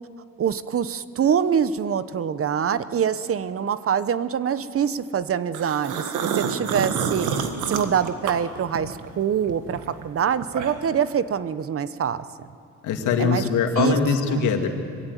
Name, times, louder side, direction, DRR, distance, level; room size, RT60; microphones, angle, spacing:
voice 1, 0.4-6.1 6.3-12.2 13.2-13.4 13.8-14.0 14.3-14.4, right 8 dB, 50° right, 14 dB, 0.9 m, -25 dB
sound 1, 5.5-9.1 9.5-11.0, right 7 dB, 85° right, 1.8 m, -28 dB
voice 2, 12.8-14.7, left 6 dB, 85° left, 4 dB, 2.2 m, -22 dB
22.5 x 16.5 x 9.3 m, 2.7 s
cardioid pair, 90°, 30 cm